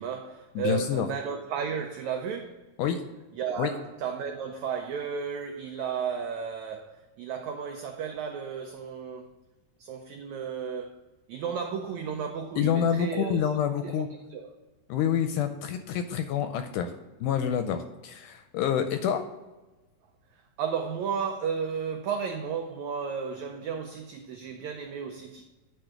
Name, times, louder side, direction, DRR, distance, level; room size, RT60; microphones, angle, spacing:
voice 1, 0.0-2.6 3.3-9.3 9.8-10.9 11.3-13.5 13.8-14.0 14.3-14.5 20.6-25.4, right 6 dB, 85° right, 1.6 m, -33 dB
voice 2, 0.6-1.1 2.8-3.0 3.6-3.7 12.6-14.1 14.9-16.9 17.2-19.2, left 8 dB, 80° left, 1.9 m, -27 dB
10.5 x 3.6 x 5.8 m
omnidirectional pair, 4.0 m